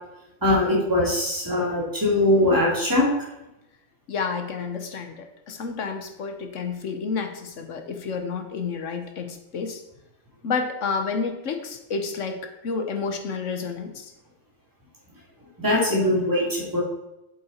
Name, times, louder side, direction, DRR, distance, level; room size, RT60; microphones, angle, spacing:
voice 1, 0.4-3.1 15.6-16.8, left 1 dB, 10° right, -5 dB, 3.0 m, -21 dB
voice 2, 4.1-9.8 10.4-14.1, left 5 dB, 50° left, 6 dB, 1.0 m, -30 dB
8.3 x 7.9 x 4.3 m, 0.92 s
omnidirectional pair, 2.3 m